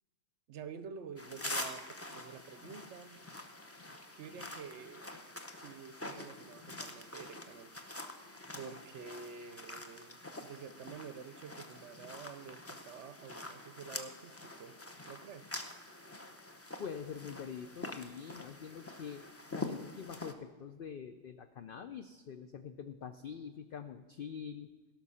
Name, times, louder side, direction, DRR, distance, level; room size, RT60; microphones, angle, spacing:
voice 1, 0.5-3.2 4.2-5.1 5.5-7.8 8.5-14.8 15.0-15.5, right 6 dB, 60° right, 12 dB, 0.8 m, -49 dB
sound 1, 1.2-20.3, left 2 dB, 20° left, 0.4 m, -46 dB
voice 2, 16.8-19.2 19.5-24.7, left 7 dB, 80° left, 9 dB, 0.5 m, -45 dB
17.0 x 6.1 x 5.6 m, 1.4 s
omnidirectional pair, 1.5 m